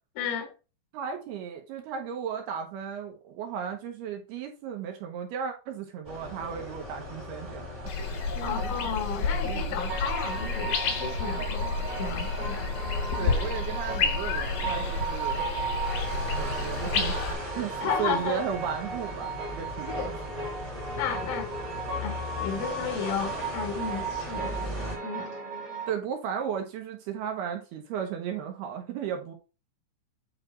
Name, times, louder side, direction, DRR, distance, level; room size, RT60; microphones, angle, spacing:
voice 1, 0.2-0.5 8.4-12.7 13.2-13.3 17.8-18.5 19.9-20.1 20.9-21.5 22.0-25.3, left 7 dB, 80° left, 3.8 m, -33 dB
voice 2, 0.9-7.9 8.4-8.7 9.3-9.8 13.2-15.4 16.3-17.2 17.6-20.1 25.9-29.3, right 8 dB, 75° right, 2.5 m, -35 dB
sound 1, 6.0-25.0, left 1 dB, 15° right, 1.2 m, -39 dB
sound 2, 7.9-17.3, left 4 dB, 65° left, 2.4 m, -30 dB
sound 3, 9.9-25.9, right 4 dB, 60° right, 1.1 m, -36 dB
9.0 x 4.1 x 4.4 m
omnidirectional pair, 5.5 m